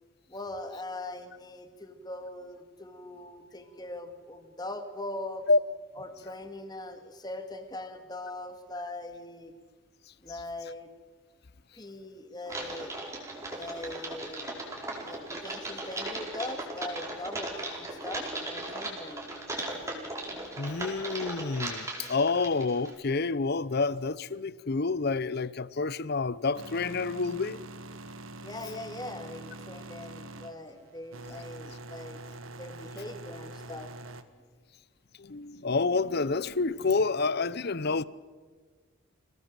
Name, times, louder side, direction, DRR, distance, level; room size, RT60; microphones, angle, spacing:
voice 1, 0.3-5.5 6.0-9.5 10.2-10.9 11.7-12.9 13.5-14.5 14.7-19.2 28.4-32.2 32.6-33.9, left 2 dB, 20° left, 2.0 m, -41 dB
Typing, 12.5-22.9, right 2 dB, 15° right, 4.6 m, -37 dB
voice 2, 20.6-27.6 35.2-38.0, left 4 dB, 50° left, 0.7 m, -28 dB
sound 1, 26.5-34.2, right 2 dB, 75° right, 1.5 m, -45 dB
28.0 x 18.0 x 7.6 m
head